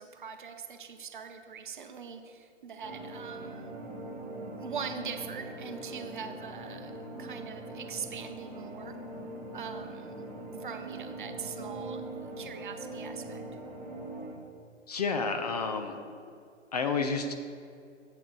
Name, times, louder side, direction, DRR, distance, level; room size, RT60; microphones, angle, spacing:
voice 1, 0.0-3.7 4.6-9.0 9.5-13.4, right 6 dB, 45° right, 7 dB, 0.7 m, -42 dB
sound 1, 2.8-14.3, right 2 dB, 5° right, 1.7 m, -42 dB
voice 2, 14.9-16.0 16.7-17.3, left 4 dB, 35° left, 5 dB, 0.6 m, -30 dB
8.4 x 8.0 x 3.8 m, 2.3 s
figure-of-eight pair, 130°, 36 cm